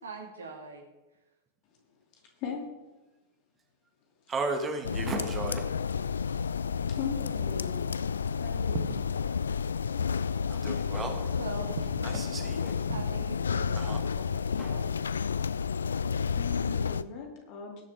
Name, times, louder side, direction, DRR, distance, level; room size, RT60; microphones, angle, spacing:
voice 1, 0.0-0.8 11.4-11.7 12.9-14.9, right 3 dB, 70° right, 2 dB, 2.2 m, -42 dB
voice 2, 2.4-2.7 7.0-8.0 8.4-8.8 16.3-17.8, left 6 dB, 40° left, 1 dB, 2.8 m, -38 dB
voice 3, 4.3-5.6 10.5-11.3 12.0-12.8 13.7-14.0, right 3 dB, 20° right, 3 dB, 2.0 m, -34 dB
sound 1, 4.8-17.0, left 6 dB, 70° left, 0.3 m, -31 dB
sound 2, 8.4-15.7, right 10 dB, 55° right, 0.7 m, -47 dB
sound 3, 10.9-11.3 11.7-12.0 12.3-13.2 13.5-13.7 14.0-14.1 14.6-14.7, left 4 dB, 15° left, 1.9 m, -53 dB
19.5 x 7.3 x 3.7 m, 1.0 s
figure-of-eight pair, 90°, 0 cm